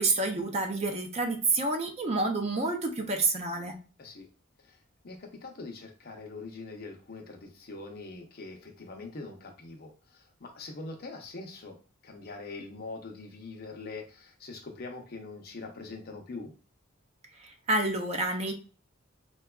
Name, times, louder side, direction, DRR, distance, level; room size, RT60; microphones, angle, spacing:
voice 1, 0.0-3.8 17.4-18.5, right 2 dB, 30° right, 0.4 m, -28 dB
voice 2, 4.6-11.8 12.0-16.5, left 3 dB, 50° left, 0.6 m, -43 dB
4.5 x 2.3 x 2.3 m
head